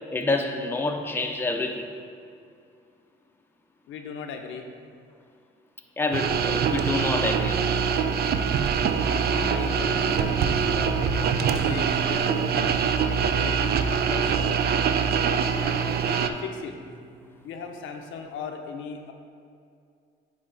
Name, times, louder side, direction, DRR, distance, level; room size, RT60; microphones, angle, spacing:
voice 1, 0.1-1.9 6.0-7.7, left 2 dB, 10° left, 3 dB, 0.6 m, -27 dB
voice 2, 3.9-4.6 9.0-12.8 13.3-14.6 15.2-16.8 17.4-19.1, left 5 dB, 80° left, 4 dB, 0.6 m, -37 dB
sound 1, 6.1-16.3, right 7 dB, 55° right, 0.4 m, -24 dB
sound 2, 6.4-17.6, equal, 35° right, 1.4 m, -41 dB
8.5 x 3.8 x 3.9 m, 2.3 s
cardioid pair, 90°, 20 cm